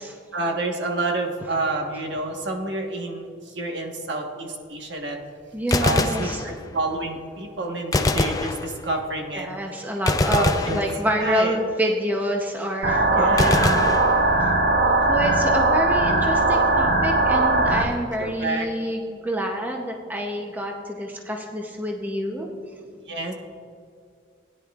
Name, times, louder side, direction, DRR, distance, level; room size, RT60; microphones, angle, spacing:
voice 1, 0.3-3.2 3.5-5.2 5.8-9.5 10.3-11.6 13.2-13.8 18.2-18.7 23.1-23.3, right 2 dB, 60° right, 1 dB, 1.3 m, -28 dB
voice 2, 5.5-6.4 9.3-13.9 14.4-14.5 15.1-22.5, equal, 10° right, 1 dB, 0.7 m, -27 dB
Gunshot gunfire, 5.6-6.9 7.9-9.1 10.1-11.5 13.4-14.7, left 2 dB, 20° left, 0.3 m, -25 dB
sound 1, 12.8-17.8, right 2 dB, 45° right, 0.8 m, -19 dB
17.5 x 10.0 x 2.4 m, 2.3 s
head